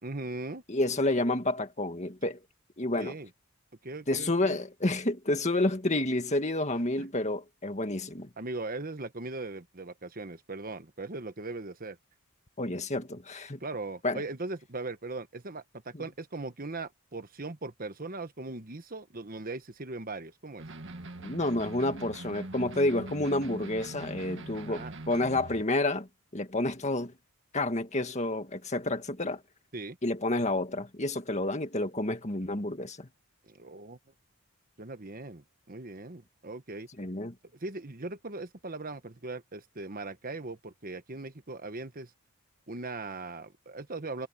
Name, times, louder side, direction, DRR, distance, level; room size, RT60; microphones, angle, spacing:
voice 1, 0.0-0.6 3.0-3.3 3.8-4.6 7.0-7.1 8.4-12.0 13.6-20.6 24.6-24.9 29.7-30.0 33.5-34.0 34.8-36.9 37.6-42.1 42.7-44.3, right 2 dB, 40° right, 1.3 m, -39 dB
voice 2, 0.7-2.4 2.8-3.2 4.1-8.3 12.6-13.6 14.0-14.2 15.9-16.0 21.2-27.1 27.5-29.4 30.0-33.1 37.0-37.3, left 2 dB, 30° left, 1.9 m, -29 dB
sound 1, 20.6-25.7, right 2 dB, 55° right, 2.0 m, -42 dB
head